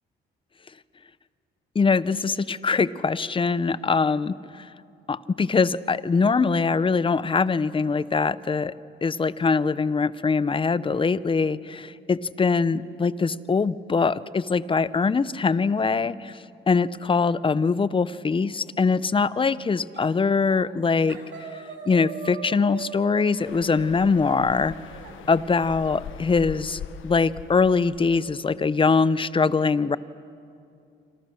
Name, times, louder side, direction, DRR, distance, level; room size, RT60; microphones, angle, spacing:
voice 1, 1.7-4.3 5.1-8.7 9.0-16.3 16.7-21.2 21.9-24.7 25.3-30.0, left 4 dB, 25° left, 17 dB, 0.7 m, -23 dB
sound 1, 19.9-20.2 20.5-20.8 21.1-25.2, right 7 dB, 65° right, 3.7 m, -40 dB
sound 2, 23.4-28.6, left 8 dB, 80° left, 1.3 m, -42 dB
27.5 x 25.5 x 6.5 m, 2.5 s
cardioid pair, 90°, 20 cm